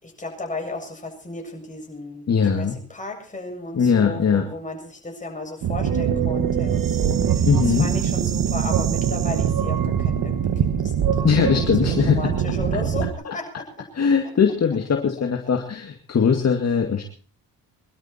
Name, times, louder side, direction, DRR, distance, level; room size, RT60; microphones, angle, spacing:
voice 1, 0.0-13.9, left 2 dB, 20° left, 1 dB, 7.4 m, -34 dB
voice 2, 2.3-2.8 3.7-4.4 7.4-7.9 11.2-12.2 13.3-13.4 13.9-17.0, left 6 dB, 45° left, 4 dB, 2.2 m, -20 dB
sound 1, 5.6-13.1, right 8 dB, 60° right, 1.9 m, -23 dB
24.0 x 12.5 x 4.4 m, 0.41 s
cardioid pair, 90°, 37 cm